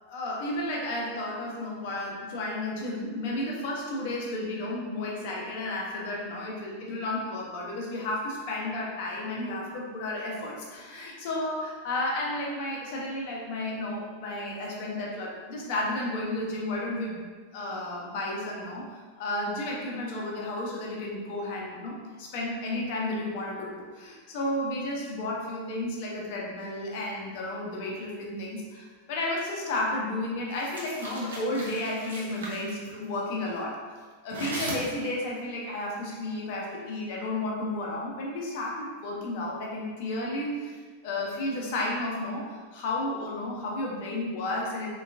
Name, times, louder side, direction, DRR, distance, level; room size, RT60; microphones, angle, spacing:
voice 1, 0.1-17.2 17.5-33.8 34.2-40.7 41.0-44.9, left 1 dB, 50° left, -2 dB, 0.7 m, -32 dB
sound 1, 30.5-32.9 34.3-35.2, right 2 dB, 65° right, 0.7 m, -38 dB
3.7 x 2.3 x 2.5 m, 1.5 s
figure-of-eight pair, 90°, 0 cm